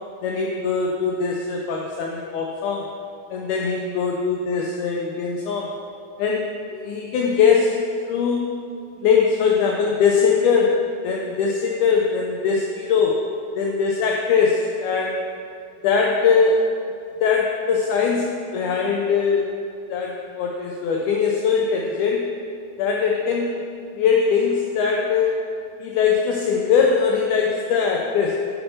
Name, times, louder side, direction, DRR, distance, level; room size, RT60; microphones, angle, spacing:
voice 1, 0.2-2.9 3.3-5.7 6.2-7.8 8.1-8.6 9.0-10.8 11.0-13.2 13.6-15.2 15.8-16.6 17.2-19.5 19.9-22.2 22.8-23.6 24.0-25.3 25.8-28.3, left 5 dB, 90° left, 0 dB, 1.7 m, -21 dB
6.7 x 4.3 x 5.4 m, 2.4 s
omnidirectional pair, 4.1 m